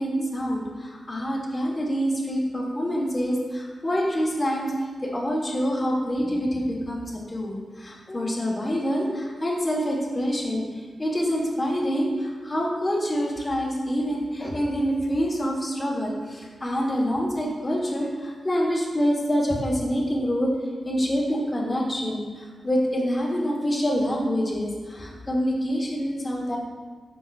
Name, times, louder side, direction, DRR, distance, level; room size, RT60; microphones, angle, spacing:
voice 1, 0.0-20.5 20.8-26.6, equal, 20° left, -3 dB, 1.5 m, -26 dB
8.8 x 6.1 x 2.6 m, 1.4 s
wide cardioid pair, 100°, 0 cm